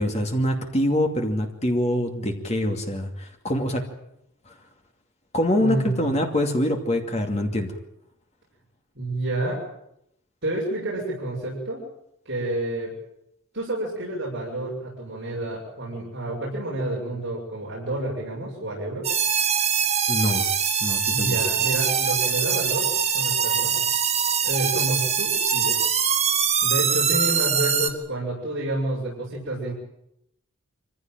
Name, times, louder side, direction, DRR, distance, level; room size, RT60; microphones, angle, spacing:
voice 1, 0.0-3.9 4.5-4.6 5.3-7.7 20.1-20.4 20.8-21.4, left 1 dB, 30° left, 3 dB, 2.6 m, -24 dB
voice 2, 5.6-6.2 9.0-9.6 10.4-11.8 12.3-12.9 13.5-19.1 21.1-24.0 24.4-25.8 26.6-29.7, right 1 dB, 55° right, -5 dB, 7.0 m, -29 dB
sound 1, 19.0-27.9, right 7 dB, 30° right, 1.8 m, -23 dB
25.0 x 15.5 x 9.2 m, 0.78 s
head